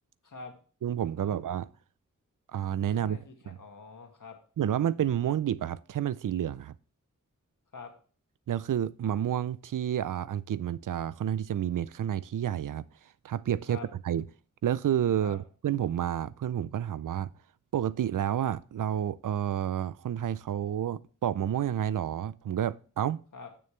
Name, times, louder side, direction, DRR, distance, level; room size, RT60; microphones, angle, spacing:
voice 1, 0.2-0.5 1.2-1.4 2.9-4.4 7.7-7.9 13.7-13.9 15.2-15.4 23.3-23.5, left 4 dB, 75° left, 1.8 m, -45 dB
voice 2, 0.8-1.7 2.5-3.2 3.5-3.6 4.6-6.7 8.5-12.8 13.2-13.8 14.0-14.2 14.6-17.3 17.7-23.2, right 10 dB, 80° right, 0.5 m, -30 dB
8.6 x 6.8 x 3.2 m
wide cardioid pair, 75°, 31 cm